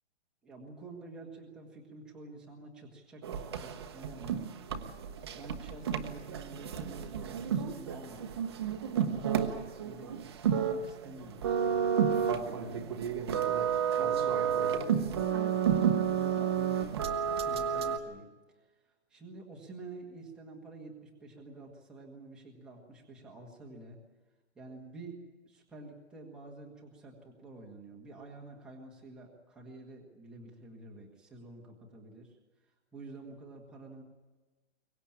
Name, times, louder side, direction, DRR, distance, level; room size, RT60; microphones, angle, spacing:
voice 1, 0.4-4.6 5.3-8.3 9.1-13.2 14.0-15.7 16.1-17.0 17.3-18.3 19.1-24.0 24.5-32.4 32.9-34.0, right 2 dB, ahead, -2 dB, 1.6 m, -49 dB
sound 1, 3.2-18.0, right 8 dB, 20° right, 1.0 m, -31 dB
23.5 x 19.0 x 8.7 m, 1.2 s
hypercardioid pair, 175°, 34 cm